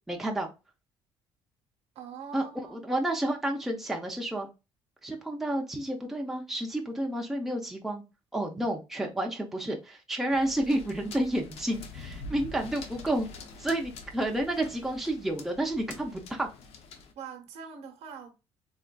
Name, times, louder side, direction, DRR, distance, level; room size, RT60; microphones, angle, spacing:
voice 1, 0.1-0.5 2.3-4.5 5.0-8.0 8.3-13.3 13.6-16.5, right 1 dB, 5° right, 0.5 m, -30 dB
voice 2, 1.9-2.9 17.2-18.3, right 6 dB, 70° right, 0.8 m, -43 dB
sound 1, 10.3-17.1, left 3 dB, 65° left, 0.6 m, -45 dB
3.6 x 2.4 x 2.2 m
cardioid pair, 120°, 11 cm